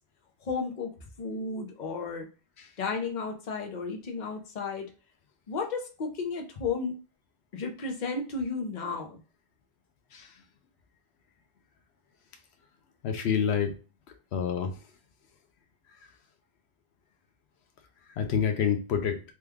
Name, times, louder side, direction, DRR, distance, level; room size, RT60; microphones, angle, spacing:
voice 1, 0.4-0.9 1.2-2.3 2.8-4.9 5.5-6.9 7.5-9.2, left 4 dB, 50° left, 3 dB, 0.8 m, -33 dB
voice 2, 13.0-13.7 14.3-14.8 18.1-19.2, left 7 dB, 85° left, 6 dB, 0.9 m, -28 dB
3.1 x 2.3 x 3.4 m, 0.34 s
omnidirectional pair, 1.1 m